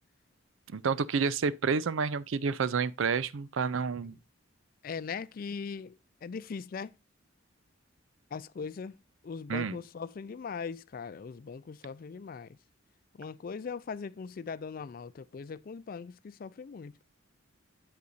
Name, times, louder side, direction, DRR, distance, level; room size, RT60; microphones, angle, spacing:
voice 1, 0.7-4.2 9.5-9.8, right 5 dB, 70° right, 0.4 m, -29 dB
voice 2, 4.8-6.9 8.3-9.0 9.2-12.6 13.1-17.0, left 5 dB, 45° left, 0.3 m, -40 dB
8.4 x 7.8 x 2.5 m
head